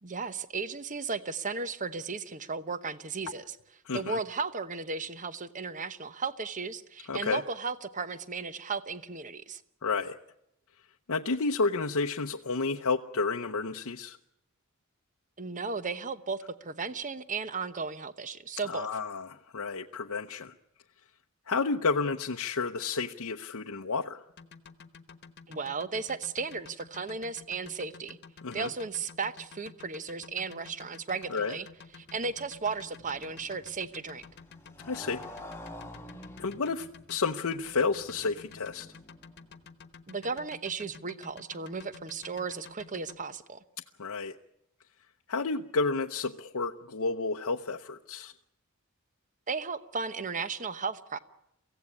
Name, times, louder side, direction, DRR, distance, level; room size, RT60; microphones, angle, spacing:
voice 1, 0.0-3.6 3.9-9.6 15.4-18.9 25.5-28.2 28.5-31.7 32.0-34.3 40.1-43.6 49.5-51.2, right 4 dB, 35° right, 13 dB, 1.0 m, -35 dB
voice 2, 3.9-4.2 7.1-7.4 9.8-10.2 11.1-14.2 18.7-20.5 21.5-24.2 28.4-28.7 31.3-31.5 34.8-35.2 36.4-38.9 44.0-44.3 45.3-48.3, left 4 dB, 70° left, 3 dB, 0.8 m, -31 dB
sound 1, 24.3-43.2, left 5 dB, 50° left, 1.3 m, -51 dB
Motorcycle, 31.7-39.8, left 1 dB, 10° left, 1.5 m, -49 dB
24.0 x 16.5 x 9.7 m, 0.83 s
head